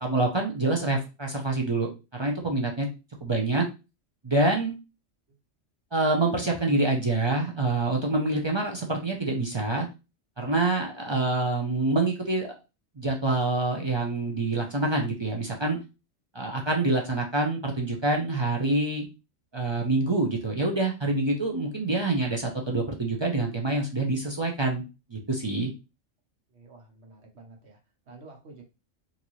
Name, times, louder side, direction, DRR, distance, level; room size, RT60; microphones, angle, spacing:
voice 1, 0.0-2.9 3.2-3.6 4.2-4.7 5.9-9.9 10.4-12.5 13.0-15.8 16.3-19.1 19.5-24.8 25.1-25.7, right 2 dB, 35° right, 0 dB, 0.4 m, -26 dB
voice 2, 26.5-27.8 28.1-28.6, right 3 dB, 60° right, 1 dB, 1.3 m, -49 dB
3.9 x 2.5 x 3.0 m, 0.28 s
omnidirectional pair, 1.3 m